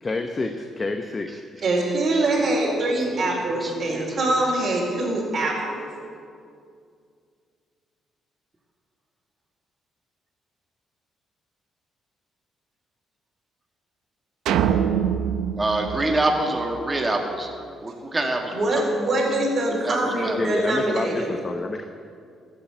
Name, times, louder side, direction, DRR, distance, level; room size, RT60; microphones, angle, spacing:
voice 1, 0.0-1.7 20.4-21.8, left 3 dB, 30° left, 5 dB, 0.9 m, -28 dB
voice 2, 1.6-5.9 18.5-21.3, right 2 dB, 50° right, -2 dB, 4.1 m, -24 dB
voice 3, 2.8-4.2 15.6-17.5 17.8-18.9 19.3-19.4 19.7-20.5, right 2 dB, 20° right, 2 dB, 1.7 m, -27 dB
sound 1, 14.5-16.9, right 8 dB, 85° right, 0.7 m, -24 dB
14.5 x 8.5 x 7.9 m, 2.3 s
cardioid pair, 90°, 0 cm